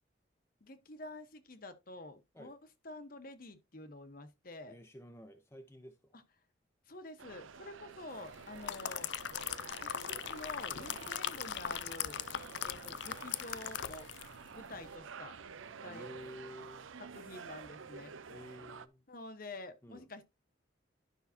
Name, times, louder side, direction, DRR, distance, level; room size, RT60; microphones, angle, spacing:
voice 1, 0.6-2.6 2.8-4.8 6.9-9.1 9.8-12.2 12.6-14.1 14.5-15.4 15.8-16.1 17.1-18.1 19.1-20.2, left 2 dB, 45° left, 1.1 m, -48 dB
voice 2, 4.7-6.2 10.9-11.0 15.9-16.9 18.3-19.0 19.8-20.1, left 1 dB, 10° left, 0.7 m, -51 dB
sound 1, 7.2-18.9, right 6 dB, 85° right, 0.6 m, -50 dB
sound 2, 8.3-14.4 14.7-14.9, left 10 dB, 60° left, 0.4 m, -40 dB
12.0 x 5.6 x 2.7 m
head